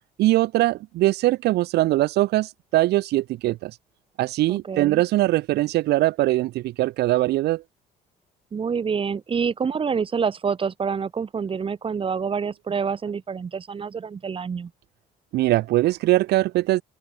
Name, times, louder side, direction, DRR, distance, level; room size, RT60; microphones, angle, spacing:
voice 1, 0.2-3.8 4.2-7.6 15.3-16.8, right 16 dB, 75° right, 1.1 m, -21 dB
voice 2, 4.5-5.0 8.5-14.7, right 6 dB, 30° right, 1.7 m, -27 dB
open air
cardioid pair, 110°, 17 cm